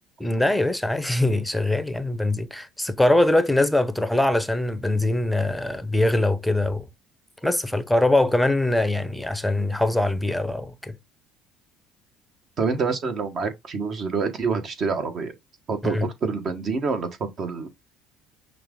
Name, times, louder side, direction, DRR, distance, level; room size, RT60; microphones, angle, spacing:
voice 1, 0.2-6.9 7.4-11.0 15.8-16.1, left 1 dB, 5° left, 0.7 m, -22 dB
voice 2, 12.6-15.3 15.7-17.7, right 4 dB, 50° right, 1.4 m, -27 dB
5.8 x 2.5 x 3.7 m
supercardioid pair, 75°, 0 cm